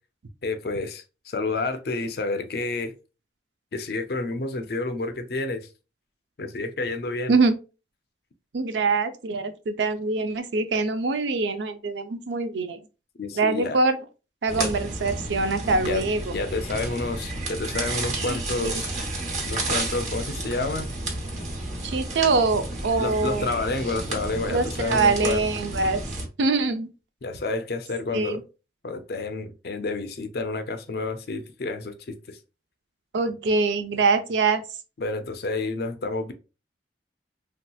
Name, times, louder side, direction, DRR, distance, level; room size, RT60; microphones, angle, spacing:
voice 1, 0.4-2.9 3.7-5.6 6.4-7.4 13.2-13.8 14.6-14.7 15.6-16.0 16.3-18.9 19.5-20.9 23.0-25.4 27.2-28.4 28.8-32.4 35.0-36.3, left 3 dB, 60° left, 0.5 m, -29 dB
voice 2, 8.5-12.8 13.4-14.0 14.4-16.2 18.3-18.7 21.8-23.5 24.5-26.0 26.4-26.9 28.1-28.4 33.1-34.6, right 3 dB, 85° right, 0.5 m, -24 dB
sound 1, 14.5-26.3, right 2 dB, 40° right, 1.0 m, -31 dB
3.2 x 2.8 x 2.3 m
head